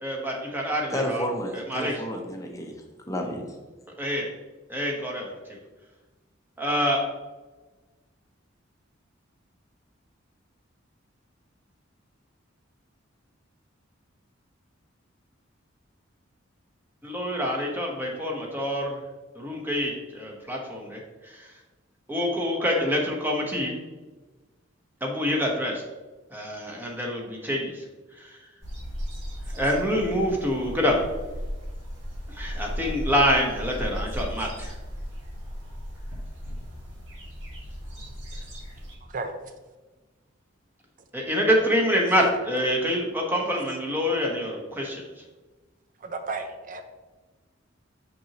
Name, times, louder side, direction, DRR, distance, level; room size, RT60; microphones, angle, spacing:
voice 1, 0.0-1.2 1.5-1.9 4.0-4.2 4.7-5.6 6.6-7.0 17.0-19.0 19.3-21.5 22.1-23.8 25.0-25.8 26.3-27.8 28.2-28.4 29.5-31.0 32.3-34.7 41.1-45.2, equal, 10° right, -1 dB, 1.1 m, -26 dB
voice 2, 0.9-2.7 3.1-3.5, equal, 15° left, 2 dB, 0.7 m, -31 dB
sound 1, 28.6-39.0, equal, 70° right, 1.9 m, -36 dB
voice 3, 39.0-39.4 46.0-46.8, right 3 dB, 40° right, 7 dB, 0.6 m, -33 dB
6.1 x 5.9 x 2.9 m, 1.2 s
head